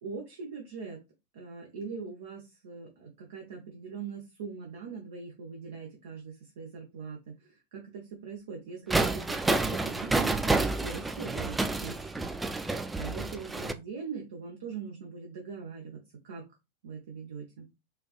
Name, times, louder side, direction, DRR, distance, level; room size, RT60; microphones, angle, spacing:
voice 1, 0.0-1.0 1.3-12.3 13.0-16.4 16.8-17.7, right 5 dB, 55° right, 1 dB, 0.8 m, -41 dB
sound 1, 8.9-13.7, right 2 dB, 10° right, 0.3 m, -29 dB
4.4 x 2.5 x 2.3 m, 0.25 s
figure-of-eight pair, 90°, 0 cm